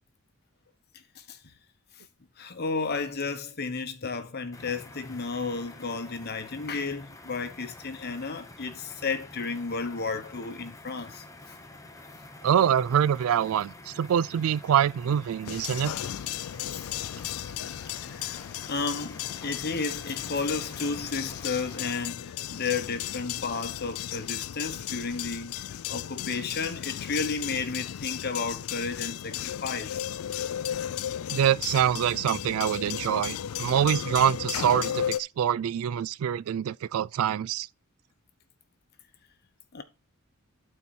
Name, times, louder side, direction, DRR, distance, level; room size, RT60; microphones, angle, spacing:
voice 1, 1.1-1.5 2.4-11.2 16.7-16.9 17.2-17.4 18.0-18.4 18.7-30.1 39.7-39.8, left 4 dB, 45° left, 1.1 m, -33 dB
sound 1, 4.5-22.1, left 2 dB, 15° left, 0.9 m, -48 dB
voice 2, 12.4-15.9 31.3-37.7, right 9 dB, 70° right, 0.3 m, -25 dB
sound 2, 15.5-35.2, left 10 dB, 75° left, 0.4 m, -35 dB
11.5 x 4.4 x 4.3 m
head